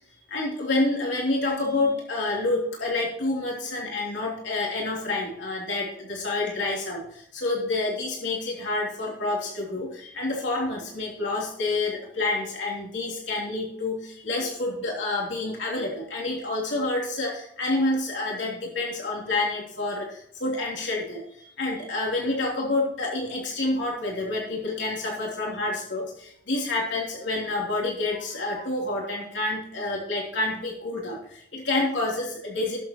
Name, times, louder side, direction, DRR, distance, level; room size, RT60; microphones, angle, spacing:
voice 1, 0.1-32.8, left 2 dB, 85° left, -3 dB, 3.1 m, -28 dB
19.5 x 7.4 x 2.9 m, 0.72 s
head